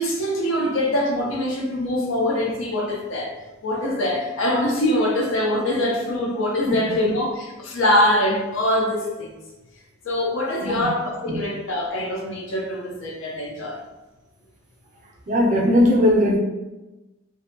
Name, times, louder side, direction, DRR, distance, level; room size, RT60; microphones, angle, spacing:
voice 1, 0.0-3.3 3.6-9.4 10.0-13.8, left 1 dB, 70° left, 0 dB, 0.5 m, -23 dB
voice 2, 15.3-16.4, left 1 dB, 35° right, -2 dB, 0.4 m, -18 dB
2.6 x 2.1 x 2.5 m, 1.1 s
head